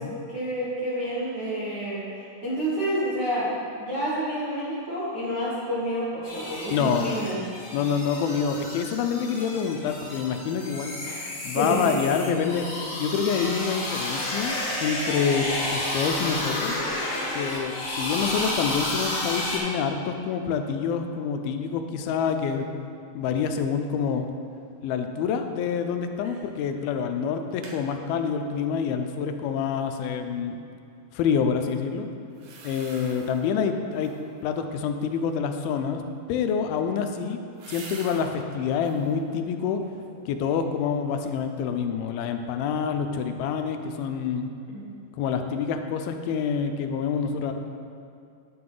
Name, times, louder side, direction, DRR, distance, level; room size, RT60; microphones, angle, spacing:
voice 1, 0.3-7.4 11.0-12.1 44.7-44.8, right 1 dB, 55° right, -10 dB, 1.1 m, -29 dB
sound 1, 6.2-19.6, left 1 dB, 50° left, 2.5 m, -31 dB
voice 2, 6.7-7.2 7.7-11.0 11.4-16.8 17.4-22.7 23.1-24.3 24.8-30.6 31.1-32.1 32.6-34.1 34.4-36.0 36.3-37.4 37.7-39.8 40.3-44.5 45.1-47.5, left 6 dB, 85° left, 6 dB, 2.5 m, -27 dB
sound 2, 26.2-26.6 26.9-27.0 27.3-27.8 32.3-33.5 33.9-34.4 36.4-38.3 38.7-39.2 39.6-40.3 40.6-40.7, right 3 dB, 70° right, 2.7 m, -45 dB
9.3 x 7.8 x 3.8 m, 2.5 s
omnidirectional pair, 4.2 m